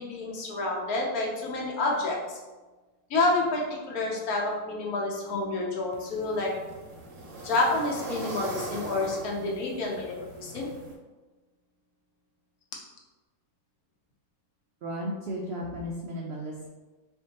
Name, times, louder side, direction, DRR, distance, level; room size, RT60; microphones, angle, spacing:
voice 1, 0.0-2.4 3.1-6.5 7.4-10.7, left 2 dB, 70° left, -2 dB, 1.2 m, -29 dB
sound 1, 5.9-10.9, right 2 dB, 60° right, 0.8 m, -40 dB
voice 2, 14.8-16.7, equal, 90° right, -1 dB, 0.5 m, -34 dB
4.5 x 2.6 x 2.8 m, 1.2 s
omnidirectional pair, 1.7 m